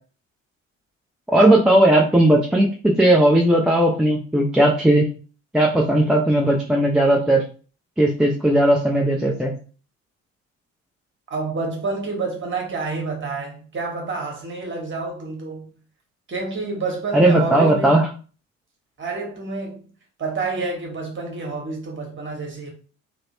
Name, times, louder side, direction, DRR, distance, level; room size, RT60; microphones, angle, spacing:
voice 1, 1.3-5.1 5.5-7.4 8.0-9.5 17.1-18.1, right 1 dB, ahead, 0.3 m, -17 dB
voice 2, 11.3-15.6 16.3-18.0 19.0-19.9 20.2-22.7, right 3 dB, 30° right, 1.2 m, -28 dB
2.9 x 2.0 x 2.9 m
figure-of-eight pair, 50°, 40 cm